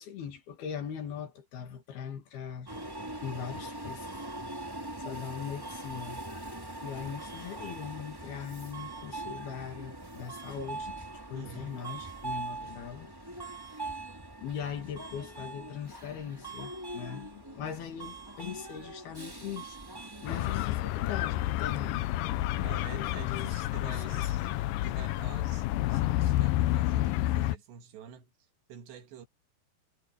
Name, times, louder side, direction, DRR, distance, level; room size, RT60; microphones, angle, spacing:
voice 1, 0.0-2.7 3.2-4.3 4.6-6.2 6.8-13.1 13.4-13.6 14.4-19.8 20.2-22.1 22.6-24.3, left 8 dB, 65° left, 4.1 m, -40 dB
Subway metro underground, 2.7-20.7, right 2 dB, 5° right, 2.0 m, -42 dB
voice 2, 11.3-11.8 22.5-24.4 24.8-28.3 28.7-29.3, right 8 dB, 80° right, 4.2 m, -48 dB
sound 1, 20.3-27.6, left 15 dB, 90° left, 1.9 m, -29 dB
omnidirectional pair, 4.9 m